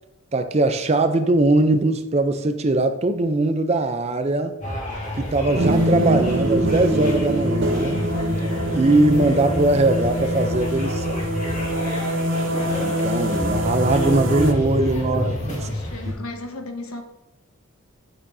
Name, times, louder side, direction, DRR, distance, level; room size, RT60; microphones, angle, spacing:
voice 1, 0.3-4.5 5.2-8.0 8.6-11.3 12.8-15.7, right 2 dB, 30° right, 9 dB, 0.4 m, -21 dB
sound 1, 4.6-16.1, left 1 dB, 35° left, 1.8 m, -29 dB
sound 2, 5.5-14.5, right 1 dB, 60° right, 0.8 m, -24 dB
voice 2, 15.5-17.0, left 2 dB, 90° left, 5 dB, 1.2 m, -35 dB
9.9 x 6.8 x 2.6 m, 0.92 s
head